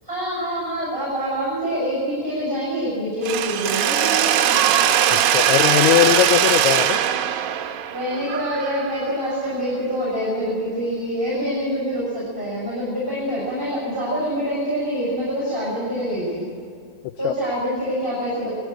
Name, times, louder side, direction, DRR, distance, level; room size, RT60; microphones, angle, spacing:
voice 1, 0.0-4.8 7.9-16.5 17.2-18.5, equal, 5° left, -6 dB, 6.5 m, -26 dB
Mechanisms, 3.2-9.1, right 10 dB, 75° right, 2.2 m, -20 dB
voice 2, 5.1-7.0 17.2-17.3, left 14 dB, 90° left, 10 dB, 2.2 m, -19 dB
21.5 x 15.5 x 8.7 m, 2.2 s
omnidirectional pair, 5.3 m